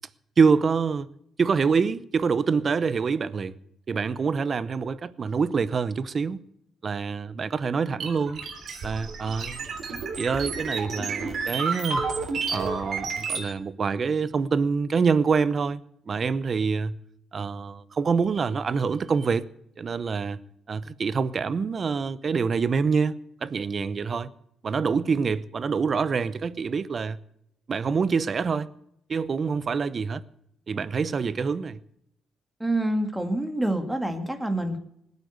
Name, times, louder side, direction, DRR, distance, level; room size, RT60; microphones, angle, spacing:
voice 1, 0.4-1.1 1.4-3.5 3.9-6.4 6.8-8.4 8.8-9.6 10.2-12.0 12.5-17.0 17.3-19.4 19.8-20.4 20.7-24.3 24.6-27.2 27.7-28.7 29.1-30.2 30.7-31.8, right 5 dB, 45° right, 0.8 m, -26 dB
sound 1, 8.0-13.5, right 4 dB, 60° right, 3.4 m, -31 dB
voice 2, 32.6-34.8, right 1 dB, 10° right, 2.1 m, -27 dB
19.0 x 8.4 x 8.0 m
cardioid pair, 90°, 0 cm